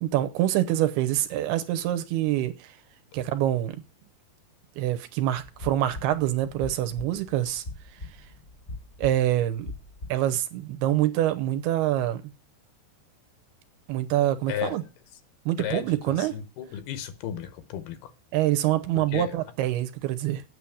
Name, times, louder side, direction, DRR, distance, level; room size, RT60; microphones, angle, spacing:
voice 1, 0.0-2.7 3.1-3.8 4.8-7.6 9.0-9.7 10.1-12.2 13.9-14.8 15.5-16.3 18.3-20.4, right 13 dB, 80° right, 2.8 m, -25 dB
sound 1, 5.4-10.3, left 2 dB, 40° left, 0.6 m, -41 dB
voice 2, 15.6-18.1 19.1-19.4, left 10 dB, 75° left, 2.6 m, -34 dB
9.0 x 6.3 x 8.6 m
omnidirectional pair, 4.8 m